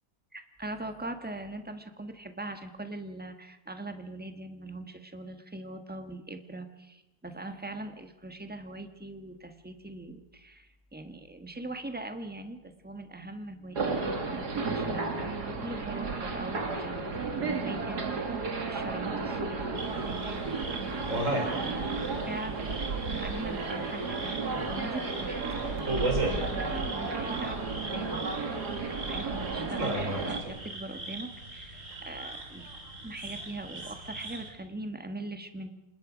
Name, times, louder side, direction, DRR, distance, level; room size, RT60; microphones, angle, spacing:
voice 1, 0.3-13.9 14.2-17.0 17.4-20.4 21.5-22.6 23.1-24.4 24.6-28.5 28.8-32.7 33.0-35.7, right 2 dB, 5° right, 7 dB, 1.3 m, -41 dB
sound 1, 13.8-30.4, right 4 dB, 75° right, 2.8 m, -33 dB
sound 2, 19.8-34.5, right 2 dB, 50° right, 3.6 m, -37 dB
27.0 x 20.0 x 5.1 m, 1.0 s
omnidirectional pair, 1.8 m